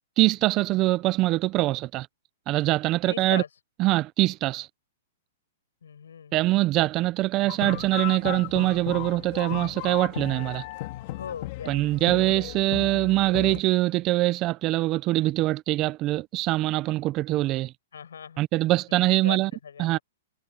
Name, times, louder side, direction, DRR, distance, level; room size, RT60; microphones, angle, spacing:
voice 1, 0.2-2.1 2.5-3.4 3.8-4.7 6.3-10.6 11.7-17.7 18.4-19.5 19.8-20.0, right 18 dB, 30° right, 0.6 m, -23 dB
voice 2, 3.1-3.5 5.8-6.4 11.1-11.9 17.9-18.4 18.9-19.4 19.6-20.0, left 7 dB, 90° left, 6.7 m, -39 dB
sound 1, 7.5-13.6, left 18 dB, 45° left, 3.3 m, -35 dB
hypercardioid pair, 140°, 0 cm